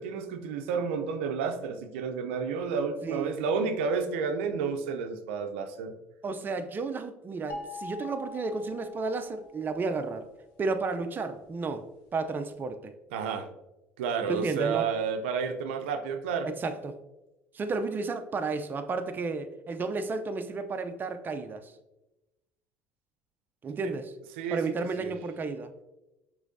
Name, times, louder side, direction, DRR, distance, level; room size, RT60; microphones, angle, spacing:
voice 1, 0.0-5.9 13.1-13.5 14.0-16.5 24.4-24.6 25.0-25.1, right 5 dB, 85° right, 6 dB, 0.5 m, -31 dB
voice 2, 3.0-3.3 6.2-10.3 10.6-12.9 14.3-14.9 16.4-17.0 17.5-21.7 23.6-24.1 24.5-25.7, right 4 dB, 30° right, 8 dB, 0.5 m, -32 dB
sound 1, 7.5-9.7, left 2 dB, 75° left, 0.8 m, -42 dB
6.2 x 3.1 x 2.6 m, 0.97 s
hypercardioid pair, 70°, 6 cm